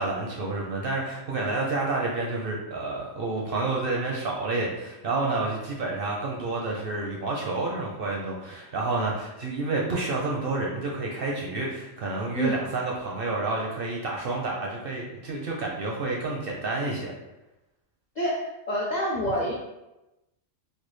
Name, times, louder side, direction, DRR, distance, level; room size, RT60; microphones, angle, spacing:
voice 1, 0.0-17.1, right 3 dB, 65° right, -2 dB, 0.6 m, -29 dB
voice 2, 18.2-19.5, equal, 70° left, -3 dB, 0.4 m, -27 dB
3.3 x 2.2 x 3.1 m, 0.99 s
omnidirectional pair, 1.3 m